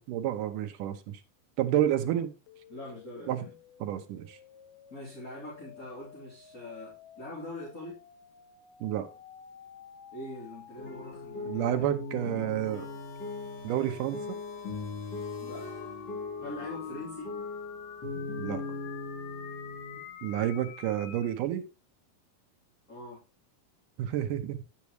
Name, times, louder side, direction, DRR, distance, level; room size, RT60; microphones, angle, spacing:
voice 1, 0.1-1.2 1.6-2.3 3.3-3.4 3.8-4.4 8.8-9.1 11.5-12.9 13.6-14.4 18.4-18.6 20.2-21.7 24.0-24.6, right 11 dB, 75° right, 2.2 m, -30 dB
sound 1, 2.5-21.4, left 9 dB, 75° left, 2.5 m, -50 dB
voice 2, 2.7-3.6 4.9-8.0 10.1-11.8 12.1-12.3 15.4-15.7 16.4-17.3 22.9-23.2, left 1 dB, 25° left, 3.1 m, -43 dB
sound 2, 10.8-20.1, left 3 dB, 40° left, 3.6 m, -39 dB
sound 3, 12.6-16.5, left 2 dB, 60° left, 5.8 m, -53 dB
9.3 x 8.4 x 3.1 m
omnidirectional pair, 4.1 m